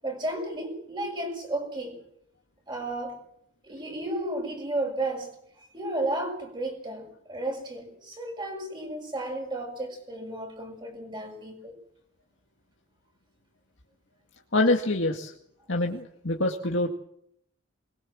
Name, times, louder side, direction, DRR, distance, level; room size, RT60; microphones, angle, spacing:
voice 1, 0.0-2.0 2.7-3.2 3.6-5.3 5.7-11.7, right 1 dB, 25° right, 2 dB, 6.5 m, -33 dB
voice 2, 14.5-15.3 15.7-16.9, left 2 dB, 65° left, 2 dB, 2.1 m, -25 dB
23.0 x 21.5 x 7.6 m, 0.70 s
head